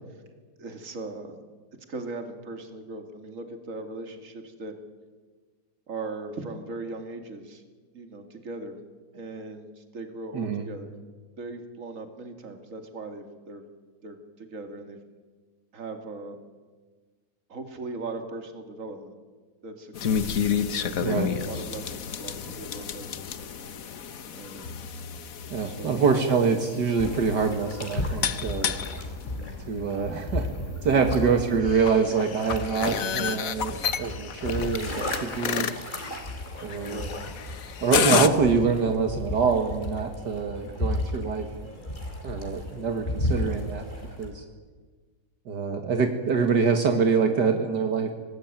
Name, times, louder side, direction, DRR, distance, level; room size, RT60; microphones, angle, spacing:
voice 1, 0.6-1.4 1.9-4.7 5.9-7.6 7.9-8.8 9.1-10.9 11.4-13.6 14.0-15.0 15.7-16.4 17.5-19.2 19.6-20.2 20.7-21.1 21.5-23.3 24.3-24.8 25.6-26.0 29.2-29.5 36.9-37.1, right 3 dB, 45° right, 6 dB, 2.6 m, -39 dB
voice 2, 10.3-10.7 21.0-21.3 25.5-28.7 29.7-30.5 30.8-35.7 36.6-37.0 37.8-41.5 42.2-43.9 44.2-44.4 45.5-48.1, right 5 dB, 65° right, 5 dB, 2.2 m, -25 dB
sound 1, 19.9-38.3, left 7 dB, 55° left, 1.4 m, -31 dB
sound 2, 27.0-44.3, left 1 dB, 25° left, 3.8 m, -34 dB
24.5 x 19.5 x 9.0 m, 1.4 s
omnidirectional pair, 1.9 m